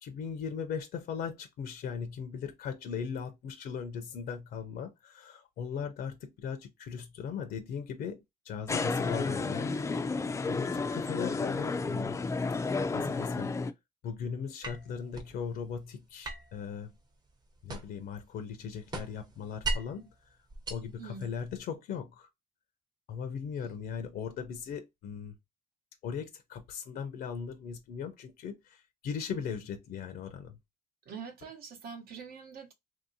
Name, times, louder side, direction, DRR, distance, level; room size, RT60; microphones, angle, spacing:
voice 1, 0.0-9.7 10.5-12.2 12.9-13.5 14.0-16.9 17.6-20.1 20.7-22.3 23.1-25.3 26.0-30.5, left 7 dB, 65° left, 0.6 m, -38 dB
sound 1, 8.7-13.7, left 3 dB, 15° left, 0.3 m, -32 dB
sound 2, 14.6-15.4 16.2-18.1 18.4-20.0 20.5-21.6, right 2 dB, 25° right, 0.7 m, -38 dB
voice 2, 21.0-21.3 31.1-32.7, right 6 dB, 65° right, 0.9 m, -44 dB
3.0 x 2.7 x 2.7 m
cardioid pair, 110°, 17 cm